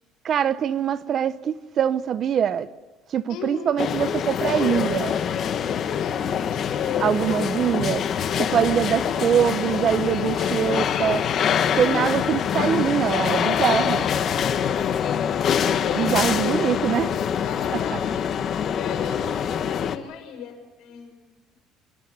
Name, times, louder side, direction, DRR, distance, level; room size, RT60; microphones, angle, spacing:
voice 1, 0.2-2.7 3.1-5.1 7.0-8.0 8.4-11.2 11.8-14.1 15.9-17.1, right 9 dB, 40° right, 0.8 m, -23 dB
voice 2, 3.3-3.9 6.0-7.5 11.7-12.2 15.5-16.8 17.4-21.3, left 8 dB, 75° left, 6.8 m, -36 dB
sound 1, 3.8-20.0, left 8 dB, 40° left, 1.2 m, -24 dB
28.5 x 13.0 x 9.5 m
cardioid pair, 155°, 0 cm